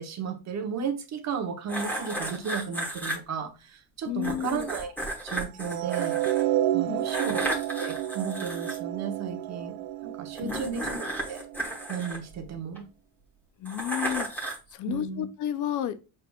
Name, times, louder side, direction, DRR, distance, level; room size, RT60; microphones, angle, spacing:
voice 1, 0.0-4.9 5.2-6.2 6.7-11.4 11.9-12.9 14.8-15.3, right 6 dB, 35° right, 0.9 m, -34 dB
sound 1, 1.7-3.2 4.2-6.4 7.0-8.8 10.3-12.8 13.7-14.7, right 1 dB, 5° left, 1.2 m, -34 dB
voice 2, 4.1-4.7 6.9-7.0 10.4-10.9 13.6-14.3 14.7-16.0, left 11 dB, 45° left, 0.5 m, -32 dB
sound 2, 5.6-11.8, right 14 dB, 75° right, 0.5 m, -30 dB
6.6 x 3.4 x 2.3 m
cardioid pair, 155°, 47 cm